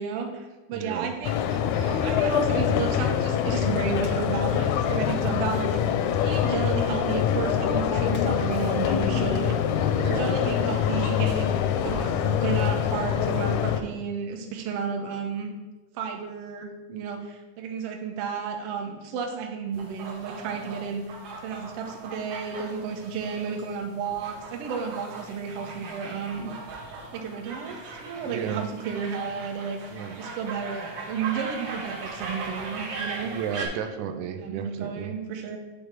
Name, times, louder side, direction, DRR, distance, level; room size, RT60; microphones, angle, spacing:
voice 1, 0.0-11.5 11.8-15.5 15.9-26.5 27.1-33.3 34.4-35.6, right 6 dB, 70° right, 3 dB, 1.5 m, -32 dB
voice 2, 0.7-1.1 9.9-10.3 28.2-28.7 29.9-30.2 33.2-35.2, right 8 dB, 85° right, 8 dB, 2.0 m, -33 dB
sound 1, 1.2-13.8, left 9 dB, 85° left, 1.9 m, -25 dB
sound 2, 19.7-33.7, right 3 dB, 55° right, 1.5 m, -39 dB
8.2 x 3.4 x 5.1 m, 1.1 s
omnidirectional pair, 3.4 m